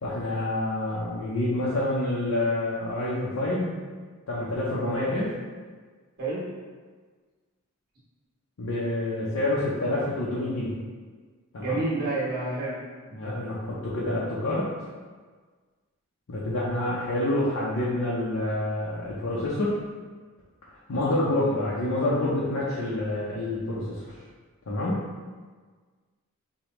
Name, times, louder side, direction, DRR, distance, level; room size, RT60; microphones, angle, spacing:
voice 1, 0.0-3.8 4.3-5.3 8.6-10.7 11.5-11.8 13.1-14.7 16.3-19.8 20.9-24.1 24.7-25.0, left 1 dB, 75° left, -7 dB, 0.6 m, -27 dB
voice 2, 11.6-12.8 20.9-21.3, right 2 dB, 45° right, -8 dB, 1.3 m, -29 dB
5.0 x 2.2 x 3.0 m, 1.5 s
head